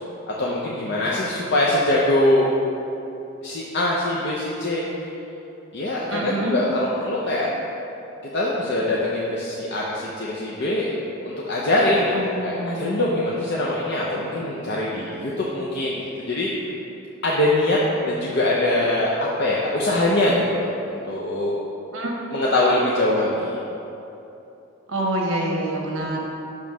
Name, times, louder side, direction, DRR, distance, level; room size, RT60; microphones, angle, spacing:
voice 1, 0.3-2.5 3.4-4.8 5.7-7.5 8.3-10.9 11.2-12.1 12.4-16.5 17.2-21.5 22.3-23.6, left 1 dB, 55° left, -5 dB, 0.6 m, -23 dB
voice 2, 6.1-6.6 12.1-13.3 14.1-14.5 21.9-22.1 24.9-26.2, right 1 dB, 70° right, -1 dB, 1.0 m, -27 dB
7.2 x 3.1 x 5.8 m, 2.9 s
head